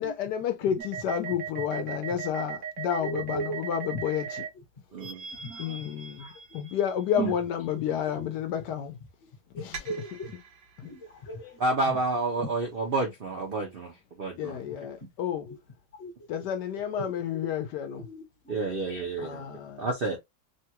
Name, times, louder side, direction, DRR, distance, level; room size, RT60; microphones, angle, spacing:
voice 1, 0.0-4.5 5.6-9.0 9.5-10.0 10.8-10.9 14.4-15.5 16.3-18.1 19.2-19.9, left 9 dB, 75° left, 1.2 m, -31 dB
sound 1, 0.8-4.5 5.0-7.2 9.7-10.8, right 8 dB, 85° right, 1.4 m, -38 dB
voice 2, 3.0-3.6 5.4-5.8 6.2-6.4 7.2-7.3 8.2-8.3 9.5-10.3 10.8-11.6 11.9-12.0 12.4-12.5 15.5-15.6 16.0-16.1 17.0-17.1 17.3-17.5 18.0-18.6 18.9-19.0, right 3 dB, 45° left, 1.0 m, -36 dB
voice 3, 4.9-5.2 11.6-14.6 18.5-19.4 19.8-20.2, right 2 dB, 65° right, 0.5 m, -29 dB
3.4 x 2.2 x 2.8 m
omnidirectional pair, 1.9 m